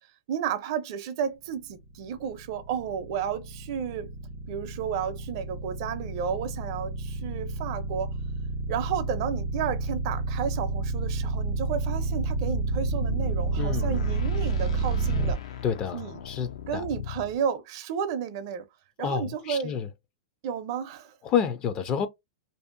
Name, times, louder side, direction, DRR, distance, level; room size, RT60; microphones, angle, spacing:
voice 1, 0.3-4.1 4.5-8.1 8.7-15.4 15.9-16.2 16.7-18.6 19.0-19.9 20.4-21.1, right 8 dB, 50° right, 0.5 m, -32 dB
sound 1, 2.0-15.3, right 3 dB, 45° left, 0.9 m, -29 dB
sound 2, 12.1-17.4, left 10 dB, 80° left, 0.5 m, -40 dB
voice 2, 13.6-14.0 15.6-16.8 19.0-19.9 21.2-22.1, left 7 dB, 25° left, 0.4 m, -29 dB
2.6 x 2.4 x 2.5 m
supercardioid pair, 155°, 3 cm